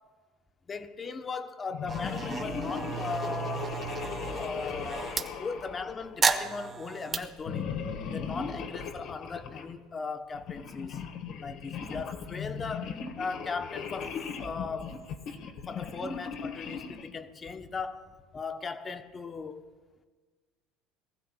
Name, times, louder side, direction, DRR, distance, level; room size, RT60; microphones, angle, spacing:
voice 1, 0.7-3.8 4.4-5.1 5.4-7.7 8.1-11.0 11.4-15.0 15.7-19.7, left 4 dB, 25° left, 1.0 m, -38 dB
sound 1, 1.7-6.5 7.4-9.7 10.3-17.2, left 6 dB, 60° left, 1.5 m, -38 dB
sound 2, 1.9-5.3 6.2-7.2, right 5 dB, 30° right, 1.4 m, -33 dB
23.0 x 15.0 x 2.4 m
supercardioid pair, 115°, 0 cm